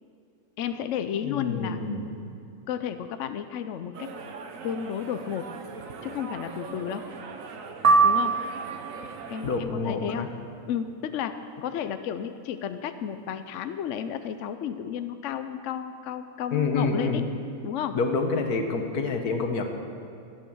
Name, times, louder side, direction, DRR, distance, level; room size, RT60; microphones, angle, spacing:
voice 1, 0.6-1.8 2.7-4.1 4.6-5.5 6.0-7.1 8.0-8.4 9.3-10.3 10.7-17.2 17.6-18.0, left 9 dB, 65° left, 10 dB, 0.9 m, -32 dB
voice 2, 1.2-2.1 9.4-10.3 16.5-17.2 17.9-19.6, left 4 dB, 80° left, 4 dB, 1.7 m, -27 dB
sound 1, 3.9-9.6, right 4 dB, 65° right, 1.3 m, -40 dB
sound 2, 7.8-9.1, right 4 dB, 45° right, 0.4 m, -22 dB
13.5 x 9.2 x 7.1 m, 2.5 s
omnidirectional pair, 1.6 m